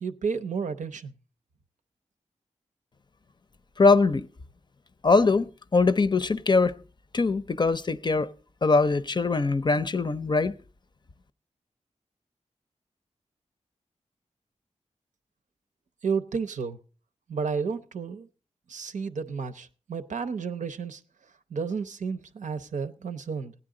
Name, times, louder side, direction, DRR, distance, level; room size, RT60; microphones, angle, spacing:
voice 1, 0.0-1.1 16.0-16.8 17.3-18.3 18.7-21.0 21.5-23.5, right 5 dB, 85° right, 0.7 m, -31 dB
voice 2, 3.8-4.3 5.0-6.8 7.1-8.3 8.6-10.6, left 3 dB, 35° left, 0.5 m, -22 dB
16.0 x 9.8 x 3.8 m
wide cardioid pair, 80°, 12 cm